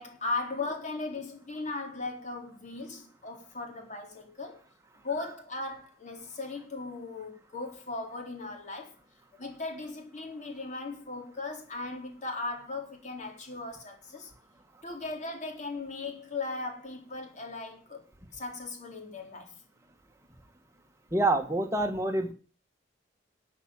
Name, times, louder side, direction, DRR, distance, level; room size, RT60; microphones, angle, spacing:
voice 1, 0.0-4.6 5.0-9.0 9.3-14.3 14.8-18.0 18.3-19.5, left 3 dB, 40° left, 3.8 m, -37 dB
voice 2, 21.1-22.3, right 2 dB, 15° right, 1.7 m, -26 dB
12.5 x 6.0 x 9.0 m
head